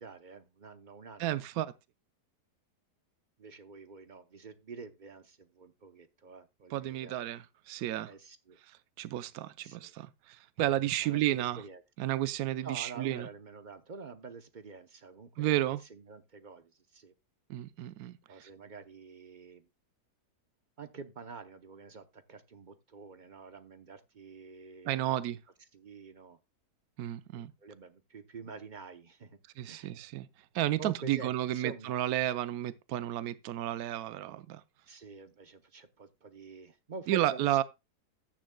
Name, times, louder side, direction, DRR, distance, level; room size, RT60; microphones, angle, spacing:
voice 1, 0.0-1.4 3.4-7.3 8.1-8.6 9.6-9.9 11.0-11.8 12.6-17.1 18.3-19.7 20.8-25.1 25.7-26.4 27.3-29.4 29.7-30.0 30.8-32.0 34.9-37.6, right 4 dB, 45° right, 0.6 m, -48 dB
voice 2, 1.2-1.7 6.7-8.1 9.0-11.6 12.0-13.3 15.4-15.8 17.5-18.5 24.9-25.4 27.0-27.5 29.6-30.3 30.5-34.6 37.1-37.6, right 13 dB, 70° right, 1.1 m, -32 dB
13.5 x 9.0 x 2.2 m
omnidirectional pair, 1.7 m